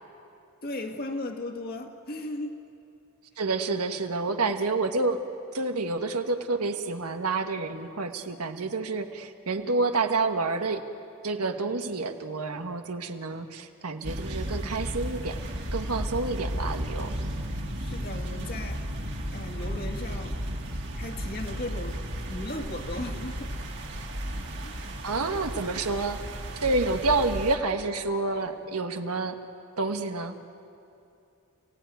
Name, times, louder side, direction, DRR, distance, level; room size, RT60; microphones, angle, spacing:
voice 1, 0.6-2.6 17.8-18.9 19.3-20.4 20.9-23.5 24.6-24.8, left 1 dB, 45° left, 4 dB, 2.0 m, -36 dB
voice 2, 3.4-5.2 5.5-10.9 11.2-15.4 15.7-17.2 25.0-26.2 26.6-29.4 29.8-30.4, right 3 dB, 85° right, 6 dB, 1.5 m, -29 dB
sound 1, 14.0-27.6, equal, 50° right, 2.7 m, -34 dB
29.5 x 17.0 x 9.4 m, 2.6 s
head